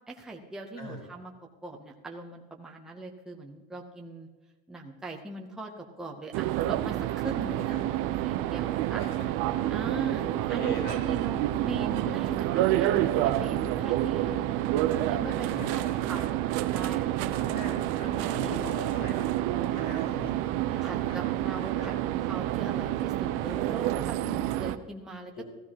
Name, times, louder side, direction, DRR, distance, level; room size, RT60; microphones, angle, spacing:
voice 1, 0.1-1.3 1.6-4.3 4.7-7.8 8.2-9.0 9.7-10.2 10.5-14.5 15.1-15.7 16.1-16.4 16.7-17.4 18.0-18.7 20.8-21.9 22.2-25.4, right 2 dB, ahead, 0 dB, 0.6 m, -40 dB
sound 1, 6.3-24.8, right 13 dB, 50° right, 0.5 m, -28 dB
voice 2, 9.0-9.3 9.6-9.7 10.2-11.3 15.2-16.3 17.3-19.3 19.7-21.2 21.6-22.0 25.3-25.4, left 1 dB, 45° left, -1 dB, 4.2 m, -42 dB
15.0 x 14.5 x 2.9 m, 1.2 s
cardioid pair, 180°, 30 cm